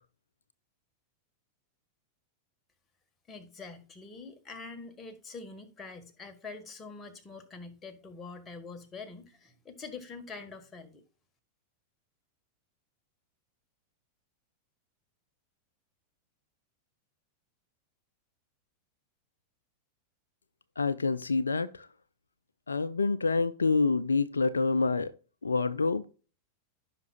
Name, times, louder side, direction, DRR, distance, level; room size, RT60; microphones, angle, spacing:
voice 1, 3.3-11.0, left 4 dB, 20° left, 1.5 m, -45 dB
voice 2, 20.8-21.9 22.7-25.1 25.4-26.1, left 3 dB, 75° left, 0.4 m, -27 dB
15.0 x 5.9 x 2.3 m
figure-of-eight pair, 90°, 0 cm